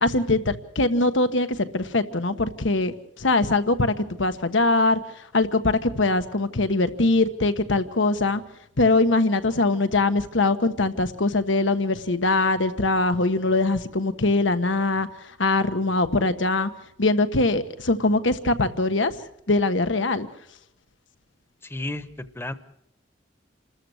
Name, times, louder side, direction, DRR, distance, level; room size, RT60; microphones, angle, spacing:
voice 1, 0.0-8.4 8.8-16.7 17.0-19.2 19.5-20.3, left 2 dB, 90° left, 10 dB, 1.4 m, -22 dB
voice 2, 21.6-22.0 22.3-22.5, left 1 dB, 15° left, 12 dB, 1.0 m, -31 dB
28.0 x 14.0 x 7.9 m, 0.76 s
head